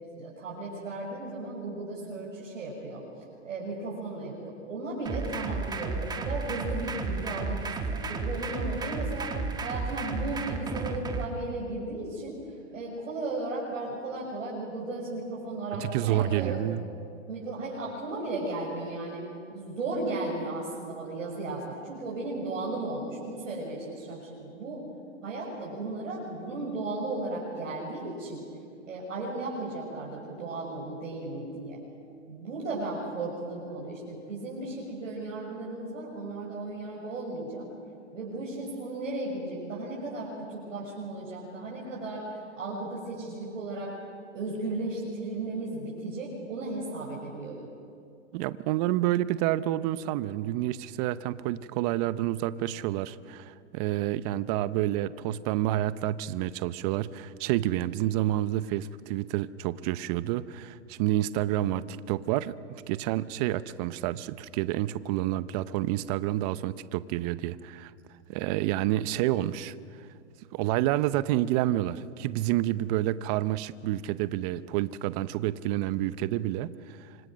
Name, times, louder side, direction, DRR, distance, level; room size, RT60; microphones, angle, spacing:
voice 1, 0.2-3.0 3.4-16.6 17.3-19.2 19.5-24.8 25.2-28.4 28.9-31.8 32.3-37.7 38.1-43.9 44.3-47.6, right 2 dB, 80° right, -5 dB, 6.8 m, -35 dB
sound 1, 5.1-11.3, right 4 dB, 10° right, 1.6 m, -33 dB
voice 2, 15.8-16.8 48.3-67.9 68.3-69.7 70.5-77.0, right 14 dB, 30° right, 16 dB, 0.7 m, -29 dB
29.0 x 25.5 x 6.3 m, 2.4 s
hypercardioid pair, 135°, 38 cm